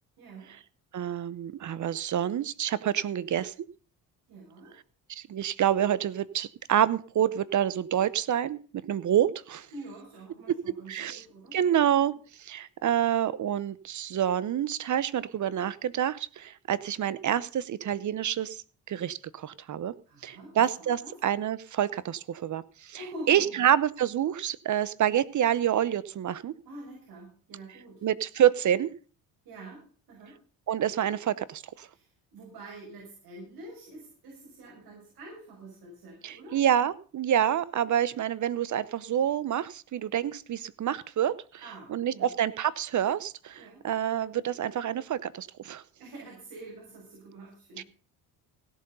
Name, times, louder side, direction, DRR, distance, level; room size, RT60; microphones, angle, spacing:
voice 1, 0.2-0.5 4.3-4.7 9.7-11.6 20.1-21.1 23.0-23.7 26.6-28.0 29.4-30.4 31.9-36.6 41.6-42.3 43.6-43.8 46.0-47.9, right 2 dB, 65° right, -2 dB, 6.6 m, -46 dB
voice 2, 0.9-3.5 5.1-8.6 8.9-9.7 10.9-11.2 11.5-12.1 12.4-18.6 18.9-19.9 20.2-23.0 23.3-26.5 28.0-28.9 30.7-31.9 36.2-41.3 41.9-45.8 47.8-47.9, right 10 dB, 50° right, 18 dB, 0.9 m, -27 dB
16.5 x 7.8 x 5.5 m, 0.39 s
supercardioid pair, 80°, 38 cm